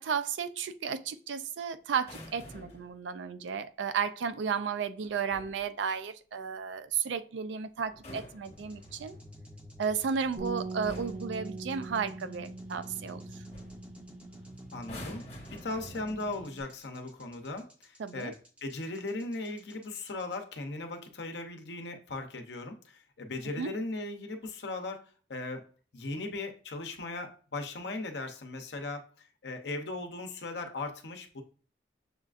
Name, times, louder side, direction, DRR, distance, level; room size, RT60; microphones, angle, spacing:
voice 1, 0.0-9.2 9.8-13.2 18.0-18.3 23.6-23.7, right 6 dB, 85° right, 12 dB, 0.4 m, -33 dB
sound 1, 2.0-2.9 5.0-5.7 7.8-9.2 10.2-10.5 10.8-11.3 13.0-13.2 13.5-13.8 14.8-16.4 17.4-17.6, left 1 dB, 35° left, 0.9 m, -48 dB
sound 2, 8.4-20.4, equal, 5° right, 0.5 m, -51 dB
Bass guitar, 10.4-16.6, right 3 dB, 45° right, 0.6 m, -43 dB
voice 2, 14.7-25.0 25.3-31.4, left 2 dB, 70° left, 5 dB, 0.7 m, -38 dB
6.6 x 2.4 x 2.4 m, 0.41 s
head